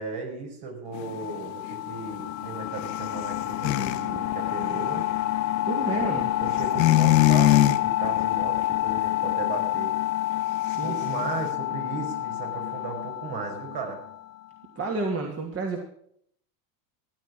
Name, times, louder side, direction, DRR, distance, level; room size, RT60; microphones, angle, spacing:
voice 1, 0.0-5.0 5.8-9.9 10.8-14.0, right 4 dB, 55° right, 2 dB, 5.4 m, -36 dB
sound 1, 0.9-4.0 4.4-5.7 6.6-7.8 8.1-8.6 9.0-9.3, left 16 dB, 85° left, 1.0 m, -22 dB
sound 2, 1.0-14.4, left 14 dB, 35° left, 0.6 m, -28 dB
voice 2, 5.6-6.3 10.6-11.3 14.8-15.8, right 3 dB, 30° right, 1 dB, 2.8 m, -30 dB
15.0 x 9.6 x 6.2 m, 0.66 s
supercardioid pair, 100°, 50 cm